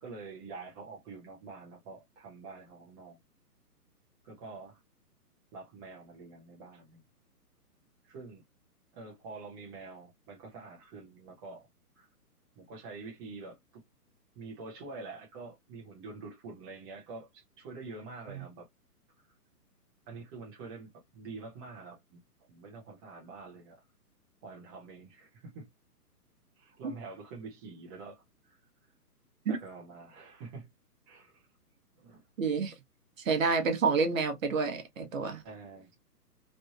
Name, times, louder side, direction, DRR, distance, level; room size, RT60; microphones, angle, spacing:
voice 1, 0.0-3.2 4.2-4.8 5.5-7.0 8.0-8.4 8.9-11.7 11.9-12.1 12.6-13.8 14.3-18.7 20.1-22.2 22.5-23.8 24.4-25.7 26.6-28.6 29.5-30.7 31.1-31.4 31.9-32.2 35.4-35.9, right 3 dB, 15° right, 0.8 m, -46 dB
voice 2, 32.4-32.7 33.2-35.4, right 4 dB, 55° right, 1.2 m, -29 dB
3.2 x 2.5 x 2.8 m
hypercardioid pair, 145°, 47 cm